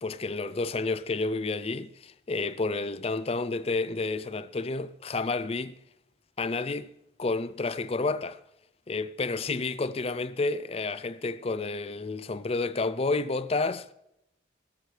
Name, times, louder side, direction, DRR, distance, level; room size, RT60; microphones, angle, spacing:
voice 1, 0.0-5.8 6.4-6.9 7.2-8.4 8.9-13.9, left 3 dB, 30° left, 0.4 m, -30 dB
17.0 x 14.5 x 3.3 m
head